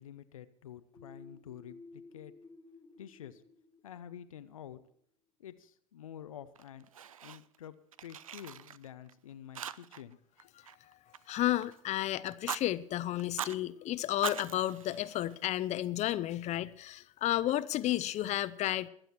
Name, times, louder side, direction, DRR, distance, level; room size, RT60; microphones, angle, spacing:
voice 1, 0.0-2.3 3.0-3.4 3.8-4.8 5.4-6.9 7.2-7.8 8.0-10.2, left 10 dB, 80° left, 0.6 m, -49 dB
sound 1, 0.9-4.6, left 3 dB, 20° left, 2.0 m, -55 dB
Fire, 6.5-7.6 7.9-9.1 9.5-10.1 10.4-11.8 12.3-12.6 13.2-13.6 14.1-15.7, right 9 dB, 85° right, 0.4 m, -42 dB
voice 2, 11.3-18.9, left 14 dB, 40° left, 0.6 m, -32 dB
21.5 x 7.8 x 4.5 m
figure-of-eight pair, 70°, 17 cm